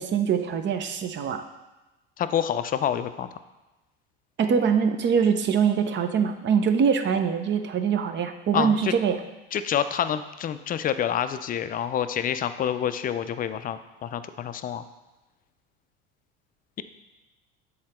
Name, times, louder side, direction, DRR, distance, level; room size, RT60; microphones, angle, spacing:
voice 1, 0.0-1.4 4.4-9.2, right 7 dB, 40° right, 8 dB, 0.7 m, -23 dB
voice 2, 2.2-3.3 8.5-8.9 9.5-14.8, left 9 dB, 30° left, 11 dB, 0.4 m, -27 dB
7.4 x 3.9 x 4.3 m, 1.1 s
hypercardioid pair, 85°, 30 cm